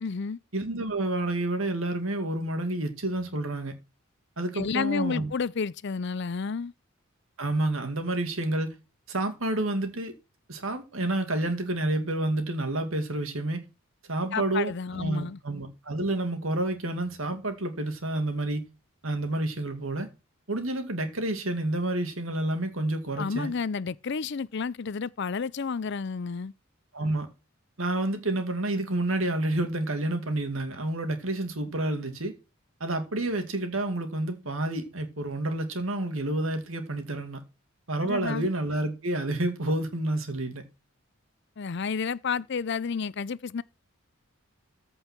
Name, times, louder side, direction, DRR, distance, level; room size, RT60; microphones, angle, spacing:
voice 1, 0.0-0.4 4.5-6.7 14.3-15.4 23.2-26.5 38.0-38.5 41.6-43.6, left 5 dB, 55° left, 0.5 m, -31 dB
voice 2, 0.5-3.7 4.4-5.3 7.4-8.7 9.1-10.1 10.5-13.6 14.1-18.6 19.0-20.1 20.5-23.5 26.9-27.3 27.8-32.3 32.8-37.4 37.9-40.6, right 1 dB, 75° right, 2.3 m, -29 dB
14.5 x 5.5 x 6.0 m
head